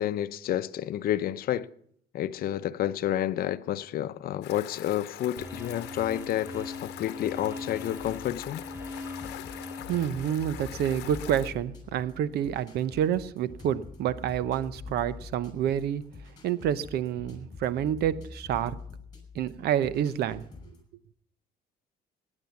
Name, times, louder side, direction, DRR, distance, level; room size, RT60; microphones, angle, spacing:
voice 1, 0.0-1.7 2.1-8.6, left 12 dB, 60° left, 0.8 m, -30 dB
sound 1, 4.4-11.5, left 15 dB, 85° left, 1.0 m, -44 dB
sound 2, 5.4-10.5, left 2 dB, 15° right, 2.4 m, -41 dB
sound 3, 8.0-20.8, left 4 dB, 25° left, 5.9 m, -46 dB
voice 2, 9.9-16.0 16.4-18.8 19.3-20.4, right 10 dB, 70° right, 0.9 m, -28 dB
17.0 x 9.9 x 7.1 m
cardioid pair, 110°, 17 cm